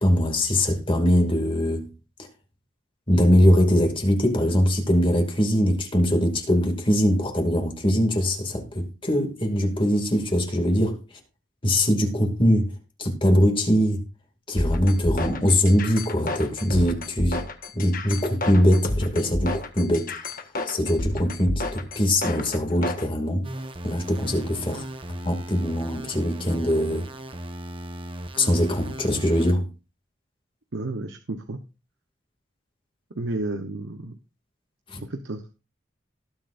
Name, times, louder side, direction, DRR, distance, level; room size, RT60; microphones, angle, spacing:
voice 1, 0.0-1.9 3.1-11.0 11.6-12.7 13.0-14.0 14.5-17.5 17.7-20.1 20.7-23.4 23.8-24.8 25.2-27.1 28.3-29.7 34.9-35.0, equal, 30° left, 2.4 m, -22 dB
sound 1, 14.6-23.1, left 2 dB, 50° left, 1.4 m, -30 dB
sound 2, 23.4-29.5, right 1 dB, 30° right, 1.1 m, -36 dB
voice 2, 30.7-31.6 33.1-34.1 35.0-35.5, right 2 dB, 90° right, 1.1 m, -31 dB
18.5 x 7.6 x 2.6 m
head